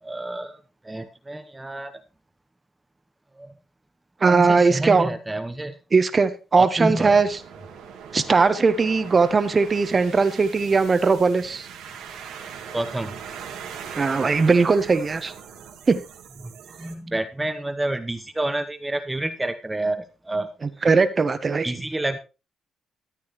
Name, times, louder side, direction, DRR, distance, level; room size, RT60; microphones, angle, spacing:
voice 1, 0.0-2.0 3.3-3.5 4.2-5.8 6.5-7.2 12.7-13.2 16.4-20.5 20.8-20.9 21.6-22.2, right 1 dB, 15° right, 8 dB, 0.9 m, -29 dB
voice 2, 4.2-5.1 5.9-7.3 8.1-11.7 14.0-15.3 15.9-16.0 20.8-21.6, right 4 dB, 35° right, 11 dB, 1.1 m, -19 dB
sound 1, 7.3-16.9, right 7 dB, 85° right, 2.1 m, -40 dB
13.5 x 8.9 x 3.1 m, 0.31 s
cardioid pair, 90°, 0 cm